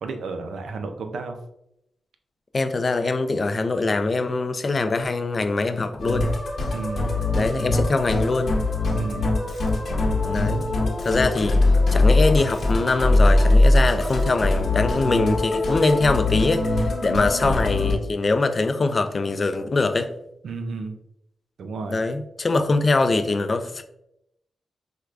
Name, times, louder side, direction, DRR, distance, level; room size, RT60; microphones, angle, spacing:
voice 1, 0.0-1.4 6.7-7.1 8.9-9.3 17.1-17.3 20.4-21.0 21.6-22.0, right 4 dB, 80° right, 6 dB, 0.4 m, -32 dB
voice 2, 2.5-6.3 7.3-8.6 10.2-10.6 11.0-11.6 11.9-20.1 21.9-23.8, left 3 dB, 40° left, 9 dB, 0.3 m, -23 dB
Musical instrument, 6.0-17.9, left 2 dB, 60° left, 0.8 m, -21 dB
4.5 x 2.2 x 2.4 m, 0.80 s
cardioid pair, 75°, 0 cm